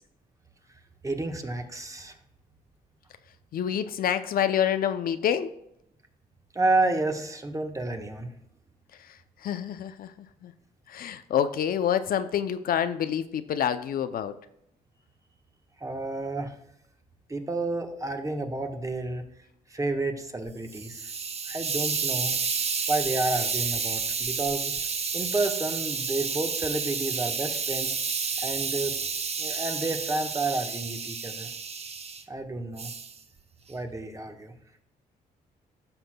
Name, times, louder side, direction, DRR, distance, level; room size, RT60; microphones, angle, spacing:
voice 1, 1.0-2.2 6.5-8.3 15.8-16.6 17.3-19.2 19.7-21.1 21.5-22.4 22.9-24.7 25.1-28.0 28.4-29.0 29.4-31.5 32.3-32.9 33.7-34.5, right 2 dB, 20° right, 5 dB, 1.2 m, -30 dB
voice 2, 3.5-5.5 9.0-9.2 9.4-10.1 10.4-10.5 10.9-14.4, left 9 dB, 60° left, 11 dB, 0.5 m, -27 dB
Hiss, 20.5-32.2 32.8-33.1, right 5 dB, 40° right, 0.8 m, -30 dB
13.0 x 5.8 x 2.2 m, 0.76 s
cardioid pair, 75°, 17 cm